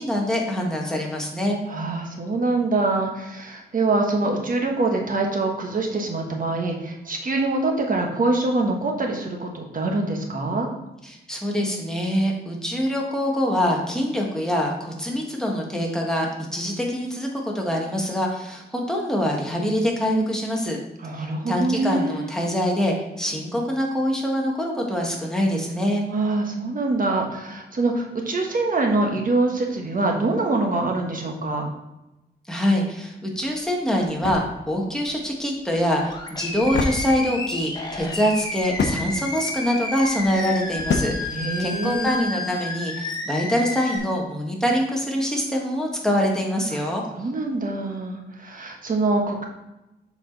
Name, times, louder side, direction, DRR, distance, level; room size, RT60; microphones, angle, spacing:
voice 1, 0.0-1.6 11.0-20.8 21.2-26.0 32.5-47.0, equal, 5° left, -1 dB, 1.6 m, -24 dB
voice 2, 1.7-10.7 21.0-22.3 26.1-31.7 41.3-42.2 46.7-46.8 47.2-49.4, right 2 dB, 50° right, 1 dB, 1.3 m, -24 dB
sound 1, 33.4-42.2, left 4 dB, 80° left, 0.9 m, -31 dB
Animal, 36.0-44.0, left 2 dB, 20° left, 1.1 m, -31 dB
6.8 x 4.9 x 4.0 m, 0.94 s
wide cardioid pair, 100°, 19 cm